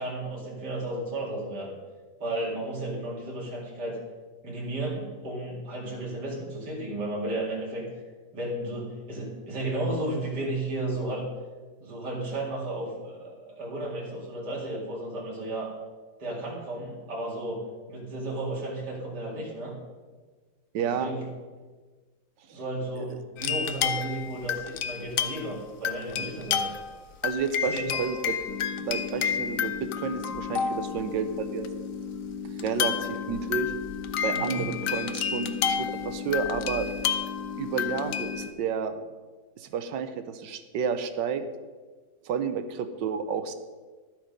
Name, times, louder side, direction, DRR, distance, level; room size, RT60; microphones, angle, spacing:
voice 1, 0.0-1.7 2.2-4.0 4.4-7.9 8.3-11.3 11.8-15.7 16.2-19.7 20.8-21.3 22.5-26.8 27.7-27.9 34.3-34.6, right 1 dB, 70° right, -5 dB, 2.9 m, -33 dB
voice 2, 20.7-21.1 22.5-22.6 23.0-23.2 27.2-28.4 28.9-31.7 32.4-33.7 34.2-36.9 37.6-38.9 39.6-41.4 42.2-43.5, right 6 dB, 85° right, 10 dB, 1.5 m, -31 dB
sound 1, 23.4-25.5 25.8-27.0 27.2-31.0 31.6-31.7 32.6-38.5, left 8 dB, 65° left, 0.9 m, -31 dB
sound 2, 28.5-38.5, left 6 dB, 85° left, 1.4 m, -37 dB
12.0 x 7.8 x 5.2 m, 1.4 s
omnidirectional pair, 1.9 m